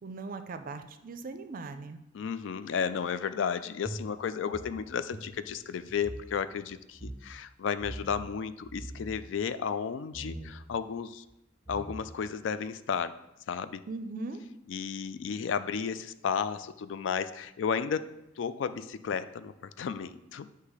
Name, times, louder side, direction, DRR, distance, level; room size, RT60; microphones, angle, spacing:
voice 1, 0.0-2.0 13.9-14.4, right 3 dB, 45° right, 9 dB, 0.4 m, -39 dB
voice 2, 2.1-11.2 11.7-13.2 13.5-13.8 14.7-18.1 18.4-20.5, left 6 dB, 70° left, 13 dB, 0.3 m, -33 dB
sound 1, 3.8-6.3 6.6-6.7 6.9-7.2 7.8-8.3 8.6-9.2 10.1-10.5 11.3-11.4 11.7-12.3, right 1 dB, 15° right, 0.7 m, -42 dB
8.2 x 2.8 x 4.8 m, 0.89 s
head